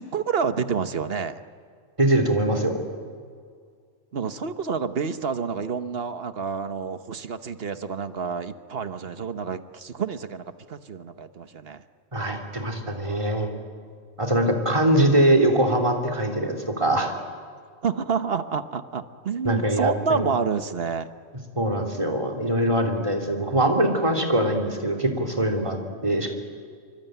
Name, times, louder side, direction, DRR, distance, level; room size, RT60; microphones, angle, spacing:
voice 1, 0.0-1.4 4.1-11.8 17.8-21.1, right 6 dB, 55° right, 10 dB, 1.2 m, -28 dB
voice 2, 2.0-2.8 12.1-13.5 14.2-17.1 19.4-20.3 21.5-25.8 26.0-26.3, right 1 dB, 25° right, 1 dB, 3.4 m, -22 dB
25.5 x 24.5 x 9.3 m, 2.1 s
omnidirectional pair, 1.3 m